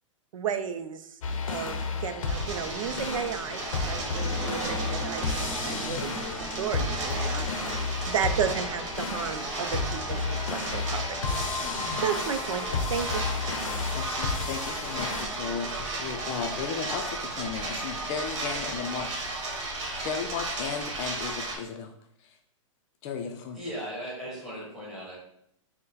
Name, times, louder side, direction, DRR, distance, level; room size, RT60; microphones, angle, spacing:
voice 1, 0.3-1.2 1.5-3.6 3.8-5.3 5.6-6.1 6.4-11.0 11.7-13.2, right 7 dB, 85° right, 9 dB, 0.4 m, -33 dB
sound 1, 1.2-15.2, left 4 dB, 85° left, 0.6 m, -32 dB
sound 2, 2.3-21.6, right 2 dB, 65° right, 1.2 m, -35 dB
sound 3, 3.6-10.6 11.0-11.1 11.5-11.6, right 2 dB, 20° right, 0.4 m, -42 dB
voice 2, 13.9-19.1 20.0-21.9 22.2-22.4 23.0-23.6, left 6 dB, 35° left, 4 dB, 0.4 m, -35 dB
voice 3, 23.5-25.2, equal, ahead, -7 dB, 1.4 m, -37 dB
3.8 x 2.1 x 3.9 m, 0.73 s
hypercardioid pair, 125°, 17 cm